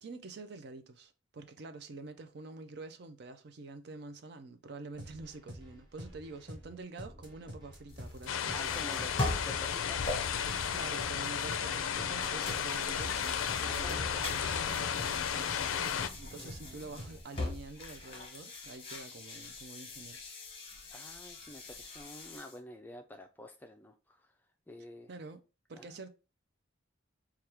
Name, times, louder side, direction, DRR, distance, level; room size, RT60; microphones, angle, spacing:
voice 1, 0.0-8.9 10.7-20.2 25.1-25.4 25.7-26.1, right 3 dB, 55° right, 0.4 m, -47 dB
sound 1, 5.0-17.2, equal, 25° right, 0.9 m, -48 dB
sound 2, 7.9-22.6, left 2 dB, 25° left, 0.8 m, -42 dB
sound 3, 8.3-16.1, left 8 dB, 85° left, 0.4 m, -34 dB
voice 2, 8.5-10.1 13.7-14.0 20.9-24.4 24.7-25.1 25.7-25.9, left 1 dB, 10° left, 0.3 m, -49 dB
3.4 x 2.3 x 4.4 m
head